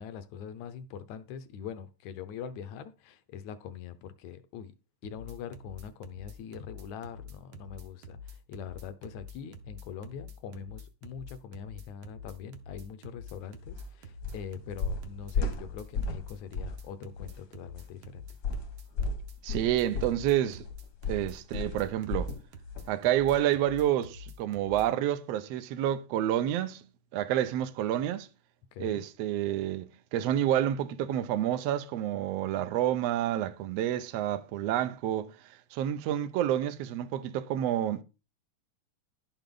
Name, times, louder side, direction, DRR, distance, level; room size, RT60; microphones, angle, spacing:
voice 1, 0.0-4.7 5.0-18.3 28.7-29.0, left 8 dB, 75° left, 1.8 m, -43 dB
sound 1, 5.0-24.9, left 3 dB, 65° right, 1.4 m, -46 dB
sound 2, 13.7-13.8 14.2-14.5 14.8-16.3 16.5-16.8 17.2-17.3 18.4-22.4 22.7-23.0 23.3-23.4, left 3 dB, 55° left, 1.1 m, -33 dB
voice 2, 19.4-20.6 21.1-22.3 22.9-26.8 27.1-28.3 28.8-35.3 35.7-38.0, right 11 dB, 80° right, 1.4 m, -29 dB
11.0 x 7.0 x 3.8 m
omnidirectional pair, 3.8 m